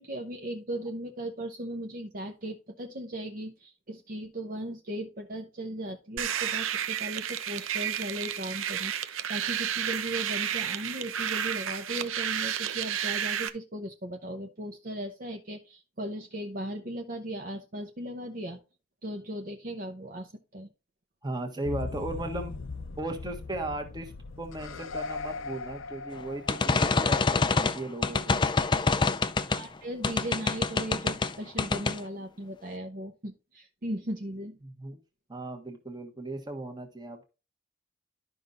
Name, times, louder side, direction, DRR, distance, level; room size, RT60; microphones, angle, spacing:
voice 1, 0.0-18.6 19.0-20.7 29.5-34.6, right 1 dB, 45° right, 4 dB, 0.8 m, -37 dB
sound 1, 6.2-13.5, right 9 dB, 85° right, 0.7 m, -31 dB
voice 2, 21.2-22.6 23.0-24.1 24.4-28.4 34.6-35.0 35.3-37.2, right 1 dB, 20° right, 4 dB, 1.4 m, -36 dB
sound 2, 21.6-27.2, left 4 dB, 80° left, 0.6 m, -39 dB
sound 3, 26.5-29.6 30.0-31.3 31.6-32.0, left 4 dB, 25° left, 0.4 m, -26 dB
12.5 x 5.5 x 2.5 m, 0.30 s
head